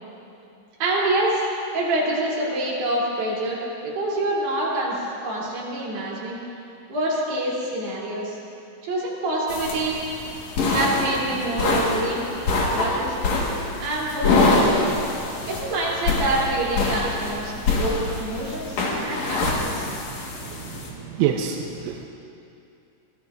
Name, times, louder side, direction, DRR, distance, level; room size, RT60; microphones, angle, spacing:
voice 1, 0.8-1.4 1.7-6.4 6.9-8.4 8.9-10.0 10.7-12.2 12.7-13.1 13.8-15.0 15.5-19.8, right 1 dB, 55° right, -6 dB, 5.0 m, -26 dB
sound 1, 9.5-20.9, left 3 dB, 75° left, 1.6 m, -25 dB
voice 2, 19.8-20.1 20.7-20.8 21.1-22.1, right 9 dB, 80° right, 2 dB, 2.9 m, -26 dB
24.0 x 17.5 x 2.6 m, 2.7 s
omnidirectional pair, 5.9 m